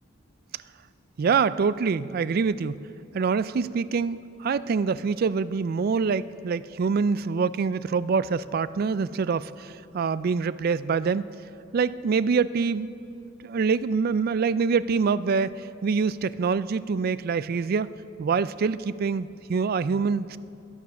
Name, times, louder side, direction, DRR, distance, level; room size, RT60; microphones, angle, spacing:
voice 1, 1.2-2.8 3.1-11.3 11.7-12.9 13.4-17.9 18.2-20.4, right 5 dB, 50° right, 16 dB, 0.3 m, -25 dB
21.5 x 7.2 x 5.9 m, 2.5 s
head